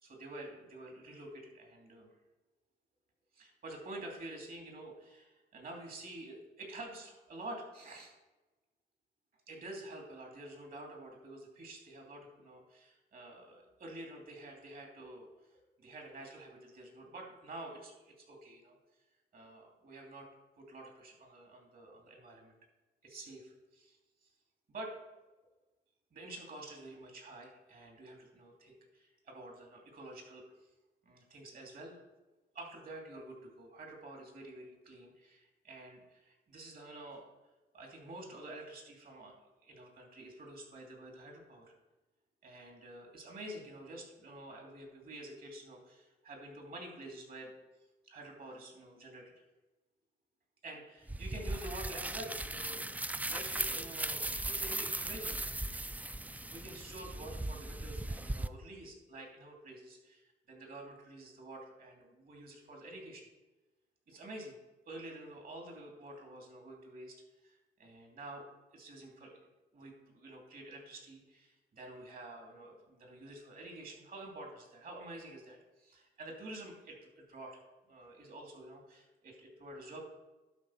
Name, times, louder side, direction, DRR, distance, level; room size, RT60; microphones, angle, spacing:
voice 1, 0.0-2.1 3.3-8.1 9.5-15.3 15.8-18.8 19.3-20.3 20.6-22.6 23.0-24.0 24.7-25.0 26.1-30.4 31.0-32.0 32.5-37.2 37.7-39.4 39.6-41.7 42.4-47.5 48.0-49.3 50.6-55.4 56.4-63.2 64.1-64.5 64.8-67.2 67.4-68.4 68.7-69.5 69.7-77.6 77.9-80.0, right 1 dB, 55° right, 1 dB, 2.8 m, -49 dB
sound 1, 51.1-58.5, right 2 dB, 10° right, 0.4 m, -38 dB
11.5 x 4.1 x 5.9 m, 1.1 s
cardioid pair, 85°, 18 cm